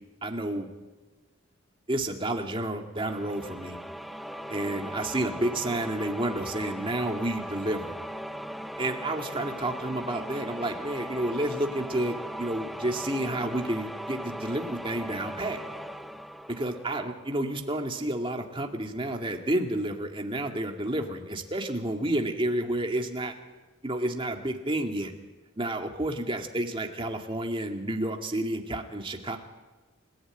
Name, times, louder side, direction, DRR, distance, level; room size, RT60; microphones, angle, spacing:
voice 1, 0.2-0.7 1.9-3.8 4.5-7.9 8.8-15.6 16.5-23.3 23.8-25.1 25.6-29.4, right 1 dB, 25° right, 3 dB, 2.1 m, -30 dB
sound 1, 3.0-17.6, equal, ahead, 0.8 m, -39 dB
28.5 x 14.5 x 9.0 m, 1.2 s
head